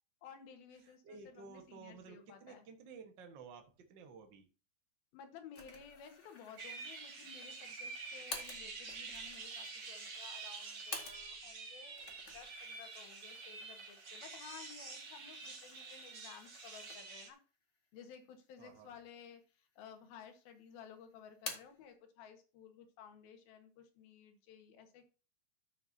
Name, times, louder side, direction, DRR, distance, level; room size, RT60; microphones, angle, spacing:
voice 1, 0.2-2.7 5.1-12.1 12.3-17.4 17.9-25.1, left 7 dB, 70° left, 6 dB, 3.3 m, -55 dB
voice 2, 0.8-4.5 18.6-19.0, right 5 dB, 85° right, 4 dB, 1.0 m, -54 dB
sound 1, 5.5-11.5 11.9-17.3 17.7-17.8 18.7-19.3 19.7-20.4 20.7-21.8, left 3 dB, 45° left, 0.9 m, -51 dB
sound 2, 6.6-17.3, right 4 dB, 40° right, 2.2 m, -48 dB
13.5 x 6.9 x 2.8 m, 0.34 s
omnidirectional pair, 4.5 m